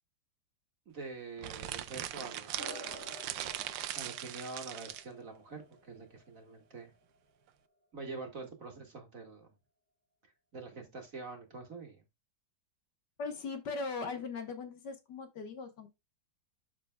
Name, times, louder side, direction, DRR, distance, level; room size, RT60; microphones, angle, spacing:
voice 1, 0.9-3.2 3.9-6.9 7.9-9.5 10.5-12.0, right 3 dB, 45° right, 2.0 m, -46 dB
sound 1, 1.4-5.1, right 12 dB, 75° right, 1.3 m, -40 dB
sound 2, 2.5-7.3, left 1 dB, 5° left, 2.3 m, -51 dB
voice 2, 13.2-15.9, left 4 dB, 60° left, 1.6 m, -39 dB
12.5 x 4.4 x 2.2 m
omnidirectional pair, 2.1 m